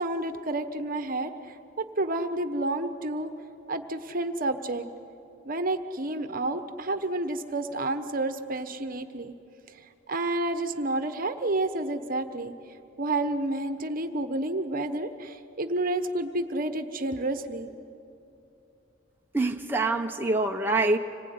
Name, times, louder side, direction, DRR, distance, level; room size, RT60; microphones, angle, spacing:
voice 1, 0.0-3.3 3.7-4.8 5.4-9.3 10.1-12.5 13.0-17.7, right 2 dB, 50° right, 9 dB, 1.1 m, -30 dB
voice 2, 19.3-21.0, right 2 dB, 10° right, 2 dB, 1.0 m, -25 dB
26.5 x 20.0 x 9.5 m, 2.7 s
head